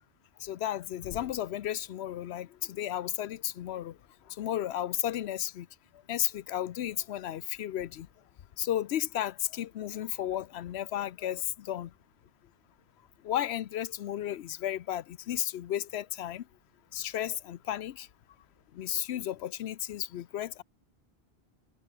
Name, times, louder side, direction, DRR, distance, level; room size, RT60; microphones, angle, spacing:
voice 1, 0.4-4.0 4.4-5.7 6.1-8.1 8.6-11.9 13.2-16.4 16.9-18.1 18.7-20.6, left 11 dB, 90° left, 0.9 m, -33 dB
omnidirectional pair, 1.1 m